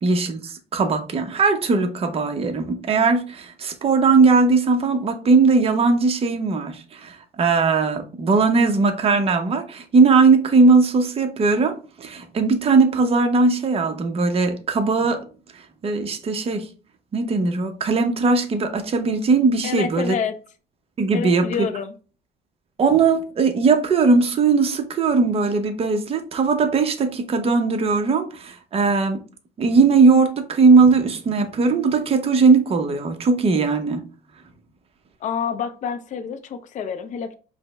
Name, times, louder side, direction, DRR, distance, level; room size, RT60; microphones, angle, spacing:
voice 1, 0.0-15.2 15.8-16.7 17.1-20.2 21.0-21.7 22.8-29.2 29.6-34.0, right 4 dB, 35° right, 0.7 m, -19 dB
voice 2, 19.6-20.3 21.1-21.9 35.2-37.4, left 6 dB, 45° left, 0.5 m, -28 dB
5.1 x 2.0 x 3.3 m
cardioid pair, 110°, 17 cm